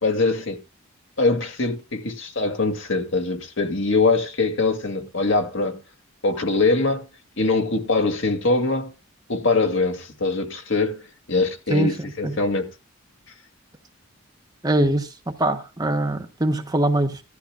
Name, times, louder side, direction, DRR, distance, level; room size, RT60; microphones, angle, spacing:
voice 1, 0.0-0.6 1.2-5.8 6.2-7.1 7.4-8.9 9.3-12.7, left 3 dB, 60° left, 2.2 m, -23 dB
voice 2, 14.6-17.2, right 1 dB, 20° right, 1.1 m, -22 dB
17.0 x 13.0 x 2.3 m
head